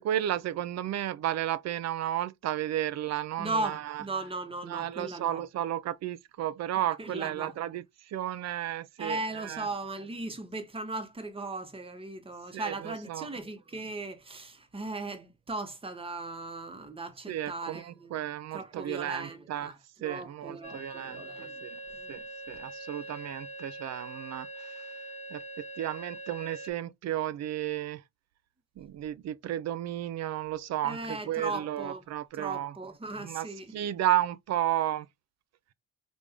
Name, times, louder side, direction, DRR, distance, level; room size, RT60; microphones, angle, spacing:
voice 1, 0.0-4.0 4.7-9.7 12.5-13.3 17.3-19.7 20.0-21.8 22.1-24.8 25.3-25.4 25.8-28.0 28.8-32.7 33.2-33.5 33.7-35.1, right 12 dB, 60° right, 0.4 m, -33 dB
voice 2, 3.4-5.4 7.0-7.5 9.0-18.2 18.5-19.8 20.0-21.6 21.9-22.2 30.8-32.0 32.3-33.7, right 2 dB, 20° right, 0.9 m, -37 dB
sound 1, 20.6-26.7, right 1 dB, 25° left, 0.7 m, -43 dB
3.4 x 2.6 x 3.4 m
cardioid pair, 90°, 30 cm